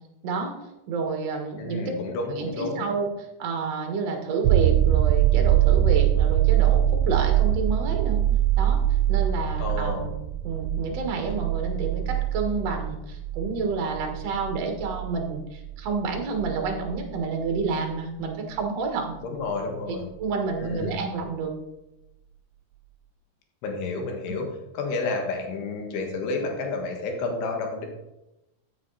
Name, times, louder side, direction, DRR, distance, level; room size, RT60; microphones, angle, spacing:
voice 1, 0.2-0.5 0.9-1.9 2.3-3.1 3.4-8.2 8.6-8.8 9.1-10.2 10.4-19.2 19.9-21.5 24.3-24.4, right 4 dB, 50° right, 3 dB, 2.2 m, -29 dB
voice 2, 1.6-2.9 9.6-10.1 19.2-20.1 20.6-21.0 23.6-24.5 24.7-27.9, left 3 dB, 85° left, 2 dB, 3.7 m, -30 dB
sound 1, 4.4-18.0 20.7-20.8, right 12 dB, 85° right, 2.0 m, -23 dB
13.5 x 7.4 x 4.1 m, 0.94 s
omnidirectional pair, 4.6 m